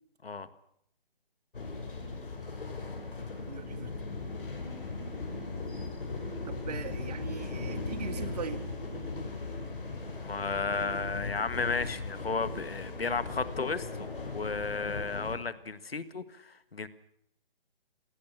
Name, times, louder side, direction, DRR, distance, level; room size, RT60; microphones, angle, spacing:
sound 1, 1.5-15.4, left 3 dB, 65° left, 6.1 m, -38 dB
voice 1, 3.5-3.9 6.5-8.6, right 7 dB, 45° right, 11 dB, 1.9 m, -40 dB
voice 2, 10.2-14.1 14.3-16.9, left 4 dB, 85° left, 14 dB, 1.7 m, -33 dB
22.0 x 17.5 x 7.3 m, 0.73 s
figure-of-eight pair, 155°, 29 cm